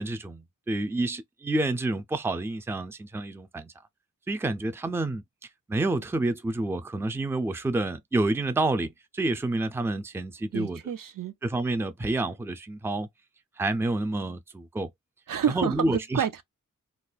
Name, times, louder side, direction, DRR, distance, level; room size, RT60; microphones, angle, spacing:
voice 1, 0.0-3.7 4.3-5.2 5.7-10.8 11.4-13.1 13.6-14.9 15.5-16.2, right 2 dB, 10° right, 0.4 m, -28 dB
voice 2, 10.5-11.3 15.3-16.4, right 9 dB, 80° right, 0.6 m, -29 dB
2.4 x 2.3 x 3.9 m
wide cardioid pair, 120°, 33 cm